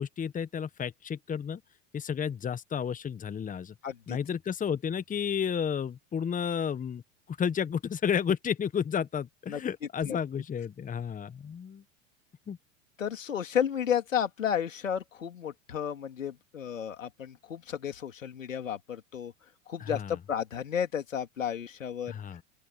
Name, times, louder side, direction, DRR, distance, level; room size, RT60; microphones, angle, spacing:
voice 1, 0.0-1.6 1.9-3.7 4.1-7.0 7.3-11.8 12.5-12.6 19.8-20.2 22.1-22.4, left 7 dB, 20° left, 1.6 m, -32 dB
voice 2, 3.8-4.2 9.5-9.6 10.0-10.2 13.0-19.3 19.7-22.1, left 8 dB, 80° left, 3.3 m, -32 dB
open air
figure-of-eight pair, 85°, 38 cm